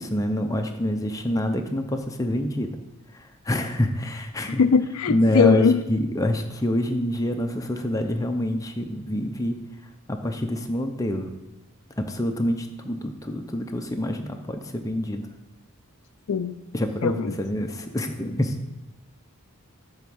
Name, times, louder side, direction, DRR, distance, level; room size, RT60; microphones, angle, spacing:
voice 1, 0.0-2.7 3.1-4.6 5.1-9.6 10.1-11.3 12.0-15.2 16.7-18.6, left 1 dB, 15° left, 4 dB, 0.6 m, -26 dB
voice 2, 4.5-5.8 16.3-16.6 17.0-17.4, left 5 dB, 75° left, 12 dB, 0.4 m, -21 dB
10.5 x 3.6 x 7.0 m, 0.96 s
head